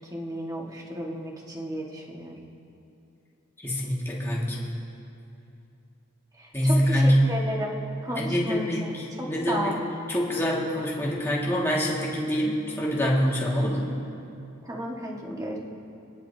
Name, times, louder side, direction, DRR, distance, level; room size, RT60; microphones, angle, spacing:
voice 1, 0.1-2.4 6.4-8.7 9.2-9.8 14.6-15.6, right 1 dB, 15° right, -2 dB, 1.6 m, -33 dB
voice 2, 3.6-4.7 6.5-7.3 8.2-9.7 10.1-13.9, equal, 10° left, -5 dB, 1.9 m, -25 dB
29.5 x 10.5 x 2.8 m, 2.7 s
head